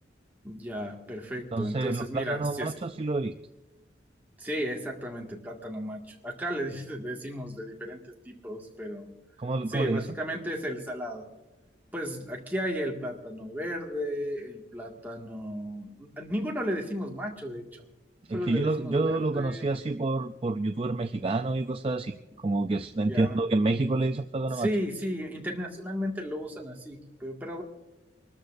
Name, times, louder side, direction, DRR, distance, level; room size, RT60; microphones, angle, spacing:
voice 1, 0.4-2.7 4.4-9.1 9.7-11.3 11.9-17.8 18.3-19.6 23.0-23.4 24.6-27.6, equal, 10° right, -1 dB, 1.9 m, -34 dB
voice 2, 1.5-3.3 9.4-10.1 18.3-24.7, right 2 dB, 30° right, 7 dB, 0.4 m, -28 dB
25.5 x 13.0 x 2.6 m, 1.1 s
head